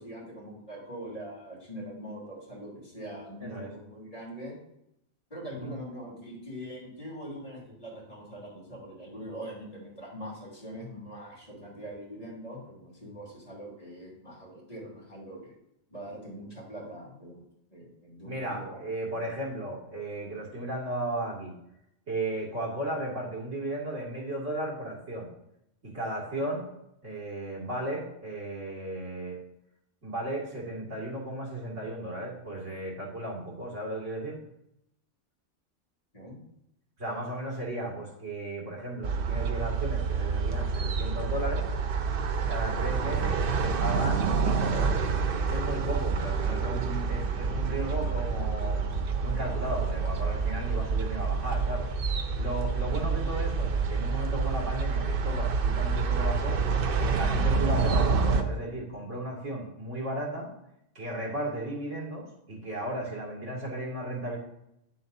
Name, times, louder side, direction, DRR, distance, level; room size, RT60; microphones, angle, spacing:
voice 1, 0.0-4.5 5.3-15.5 15.9-17.4 17.7-18.9 36.1-36.4 52.9-53.0, equal, 30° left, -4 dB, 3.0 m, -42 dB
voice 2, 3.4-3.7 5.6-5.7 18.2-21.5 22.1-25.3 25.8-26.7 27.0-29.4 30.0-34.4 37.0-41.7 42.5-45.0 45.5-48.8 49.2-51.9 52.3-56.6 57.0-60.5 60.9-64.4, right 1 dB, 75° right, -4 dB, 2.7 m, -35 dB
sound 1, 39.0-58.4, right 5 dB, 55° right, 0.8 m, -28 dB
9.1 x 7.6 x 2.7 m, 0.81 s
omnidirectional pair, 1.3 m